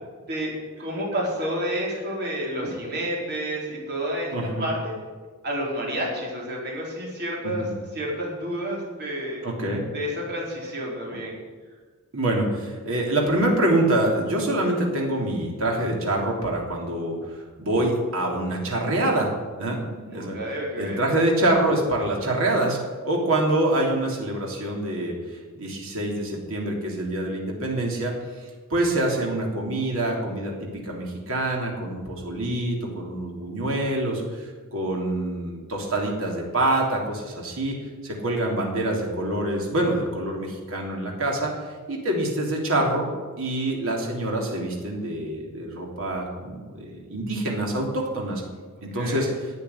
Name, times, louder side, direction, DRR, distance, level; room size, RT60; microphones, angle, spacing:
voice 1, 0.8-4.3 4.6-4.9 5.4-7.7 7.9-9.4 9.9-11.4 19.8-21.0 48.9-49.3, equal, 45° right, -3 dB, 4.9 m, -30 dB
voice 2, 4.3-4.7 7.4-7.7 9.4-9.8 12.1-19.3 19.6-19.8 20.1-20.4 20.7-25.2 25.5-37.8 38.0-41.5 41.9-43.1 43.4-48.4 48.8-49.5, right 1 dB, 65° right, -1 dB, 3.3 m, -26 dB
12.0 x 8.5 x 10.0 m, 1.4 s
head